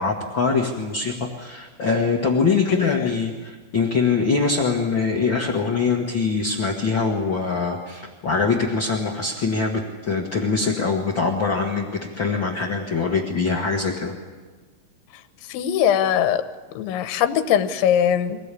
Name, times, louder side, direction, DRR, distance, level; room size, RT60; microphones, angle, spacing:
voice 1, 0.0-14.1, left 4 dB, 70° left, 0 dB, 1.1 m, -23 dB
voice 2, 2.7-3.1 15.5-16.4 16.8-18.4, left 9 dB, 85° left, 10 dB, 3.5 m, -21 dB
24.0 x 18.0 x 8.5 m, 1.4 s
omnidirectional pair, 5.2 m